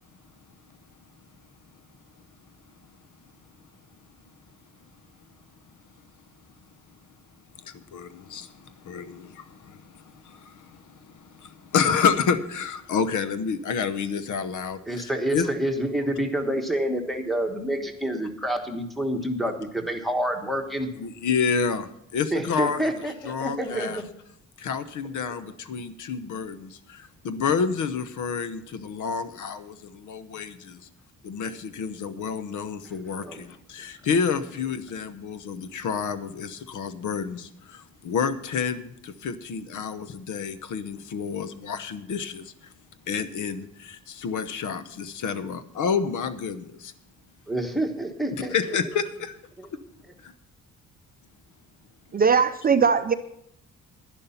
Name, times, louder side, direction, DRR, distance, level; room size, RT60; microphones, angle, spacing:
voice 1, 7.7-9.8 10.2-10.7 11.2-14.8 15.3-15.5 21.0-22.9 23.3-24.0 24.6-30.8 31.2-42.5 43.1-46.9 48.5-48.8 49.2-49.3 50.2-50.3, left 6 dB, 75° left, 12 dB, 0.9 m, -29 dB
voice 2, 14.9-20.9 22.3-24.1 33.2-33.4 33.8-33.9 47.5-48.5 48.9-49.0, right 1 dB, ahead, 5 dB, 1.2 m, -28 dB
voice 3, 52.1-53.1, right 6 dB, 30° right, 10 dB, 0.5 m, -20 dB
11.0 x 11.0 x 5.6 m, 0.77 s
wide cardioid pair, 165°, 31 cm